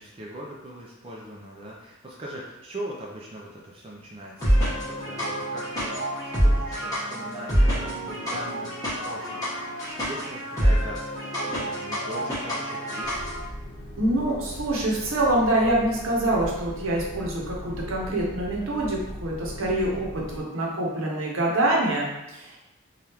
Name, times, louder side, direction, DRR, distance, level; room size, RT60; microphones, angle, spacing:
voice 1, 0.0-9.5 10.0-13.3, equal, 25° right, -4 dB, 0.4 m, -40 dB
sound 1, 4.4-13.4, equal, 15° left, 1.0 m, -26 dB
sound 2, 13.0-20.4, equal, 60° left, 0.7 m, -39 dB
voice 2, 14.0-22.6, right 1 dB, 80° right, -2 dB, 0.8 m, -25 dB
3.4 x 2.3 x 2.8 m, 0.95 s
head